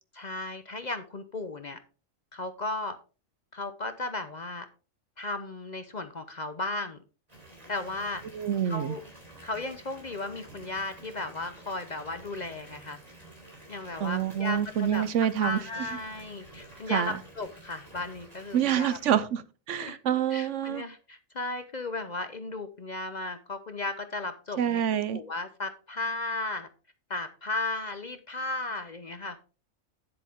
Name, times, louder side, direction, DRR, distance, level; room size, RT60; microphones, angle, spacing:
voice 1, 0.1-1.8 2.3-3.0 3.5-4.7 5.2-7.0 7.7-8.2 8.7-9.0 9.4-13.0 13.7-15.0 15.4-19.0 19.7-20.0 20.3-24.8 25.1-26.7 27.1-29.4, left 2 dB, 40° left, 0.7 m, -35 dB
Water tap faucet / Bathtub (filling or washing) / Fill (with liquid), 7.3-19.1, right 2 dB, 30° right, 3.7 m, -50 dB
voice 2, 8.3-8.9 14.0-15.6 16.9-17.2 18.5-20.8 24.6-25.2, right 9 dB, 65° right, 1.0 m, -27 dB
9.9 x 7.7 x 3.5 m
omnidirectional pair, 1.4 m